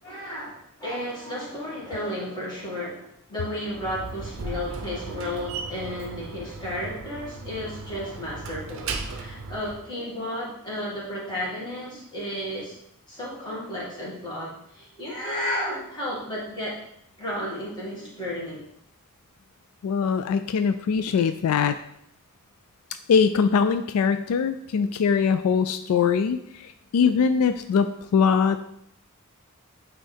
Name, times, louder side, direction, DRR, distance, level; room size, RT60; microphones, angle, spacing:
voice 1, 0.0-12.8 13.1-16.7 17.2-18.6, left 1 dB, 20° left, -6 dB, 2.0 m, -33 dB
Slam, 3.7-9.9, right 4 dB, 60° right, 0.6 m, -37 dB
voice 2, 19.8-21.8 23.1-26.4 26.9-28.6, left 6 dB, 75° left, 10 dB, 0.3 m, -22 dB
8.8 x 3.2 x 3.4 m, 0.73 s
head